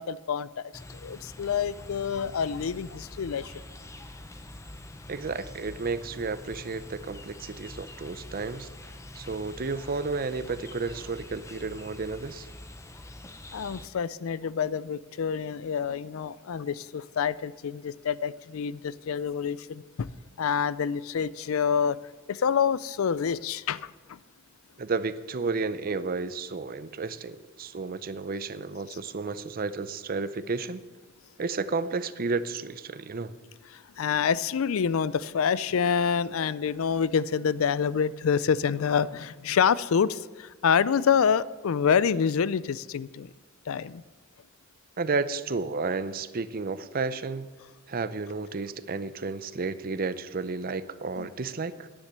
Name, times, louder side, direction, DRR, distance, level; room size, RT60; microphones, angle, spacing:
voice 1, 0.0-3.6 13.5-20.1 20.4-22.0 22.3-24.2 33.7-43.3 43.7-44.0 51.2-51.3, left 7 dB, 80° left, 18 dB, 0.4 m, -27 dB
sound 1, 0.7-13.9, left 1 dB, 15° left, 0.6 m, -45 dB
voice 2, 5.1-12.5 24.8-30.8 31.4-33.3 45.0-47.5 47.9-51.9, right 4 dB, 45° right, 14 dB, 0.6 m, -32 dB
10.5 x 9.8 x 6.6 m, 1.3 s
head